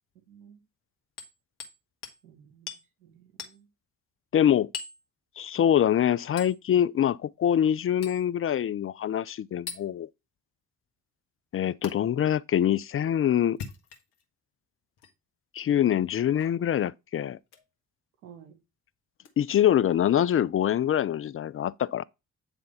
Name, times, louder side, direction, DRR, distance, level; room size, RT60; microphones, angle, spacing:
voice 1, 0.1-0.6 2.2-3.7 18.2-18.6, right 8 dB, 90° right, 1.1 m, -53 dB
Hammer, 1.2-1.8 2.0-2.2 2.7-2.8 3.4-3.6 4.7-5.0 6.4-6.6 8.0-8.2 9.7-9.8 11.8-11.9 13.4-14.2 15.0-15.1 16.4-16.6 17.5-17.7 19.2-19.3, left 6 dB, 60° left, 1.6 m, -40 dB
voice 2, 4.3-4.7 5.4-10.1 11.5-13.6 15.5-17.4 19.4-22.0, left 10 dB, 30° left, 0.4 m, -24 dB
9.7 x 3.4 x 5.6 m
hypercardioid pair, 40°, 44 cm